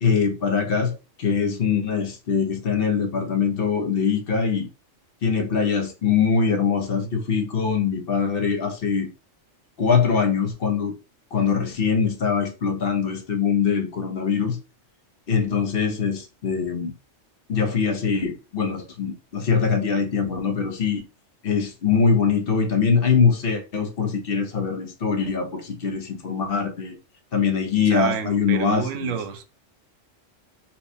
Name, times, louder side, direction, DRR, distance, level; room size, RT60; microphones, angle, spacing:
voice 1, 0.0-4.7 5.2-9.1 9.8-10.9 11.3-14.6 15.3-16.9 17.5-21.0 21.4-26.9 27.3-29.1, left 6 dB, 55° left, 0.9 m, -23 dB
voice 2, 27.9-29.4, right 8 dB, 90° right, 0.9 m, -29 dB
4.1 x 2.2 x 2.6 m
omnidirectional pair, 1.2 m